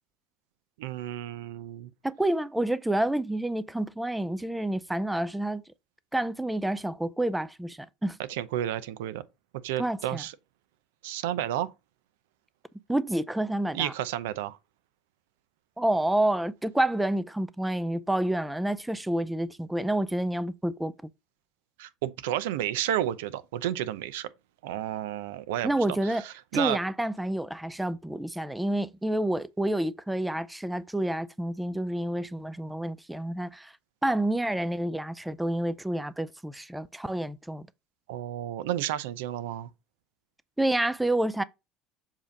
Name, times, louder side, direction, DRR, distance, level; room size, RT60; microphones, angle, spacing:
voice 1, 0.8-1.9 8.3-9.2 9.6-10.3 11.0-11.7 13.7-14.6 21.8-24.3 24.6-26.8 38.1-39.7, right 12 dB, 90° right, 0.6 m, -31 dB
voice 2, 2.0-5.6 6.1-8.2 9.8-10.2 12.9-13.9 15.8-21.1 25.6-26.2 26.5-33.7 34.0-37.7 40.6-41.4, right 1 dB, 5° right, 0.4 m, -29 dB
7.3 x 2.8 x 5.1 m
supercardioid pair, 115°, 0 cm